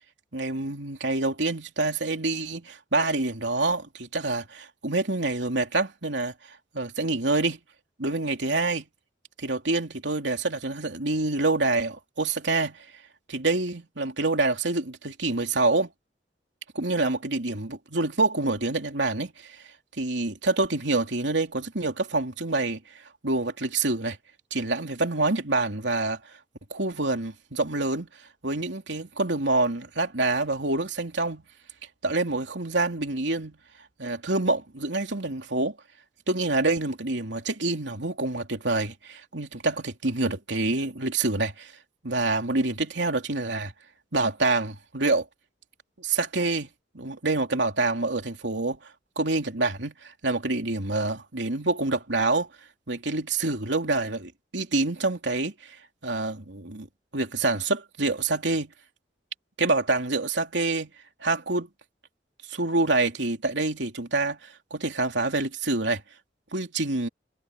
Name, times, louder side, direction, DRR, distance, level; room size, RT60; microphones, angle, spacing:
voice 1, 0.3-7.6 8.0-8.9 9.4-12.8 13.3-15.9 16.7-19.6 20.0-22.8 23.2-24.2 24.5-26.3 26.7-28.1 28.4-31.4 32.0-33.6 34.0-35.7 36.3-41.7 42.0-43.7 44.1-45.2 46.0-48.8 49.2-52.5 52.9-55.8 56.0-56.9 57.1-58.7 59.6-60.9 61.2-61.7 62.5-66.0 66.5-67.1, right 2 dB, 80° right, 3.1 m, -27 dB
head